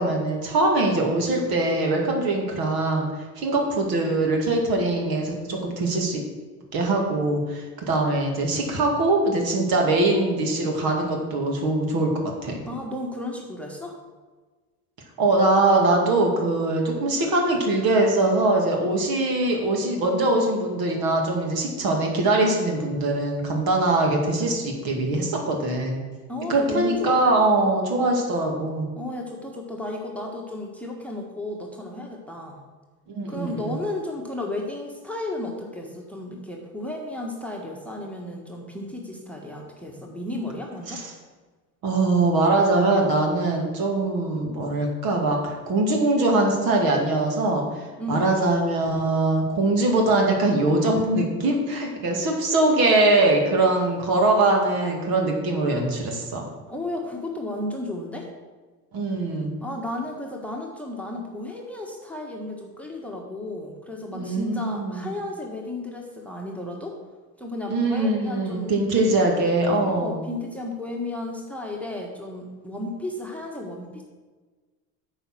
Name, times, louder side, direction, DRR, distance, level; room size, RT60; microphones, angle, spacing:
voice 1, 0.0-3.1 3.4-6.2 6.7-12.6 15.2-26.0 26.5-28.9 33.1-33.8 41.0-41.1 41.8-56.5 58.9-59.6 64.1-65.1 67.7-70.2, right 2 dB, 50° right, 1 dB, 2.2 m, -22 dB
voice 2, 12.7-14.0 26.3-27.2 29.0-32.6 33.3-41.0 48.0-48.3 56.7-58.3 59.6-67.0 67.4-68.7 69.7-74.0, left 2 dB, 5° left, 0 dB, 1.5 m, -33 dB
8.9 x 4.9 x 6.1 m, 1.3 s
hypercardioid pair, 70°, 46 cm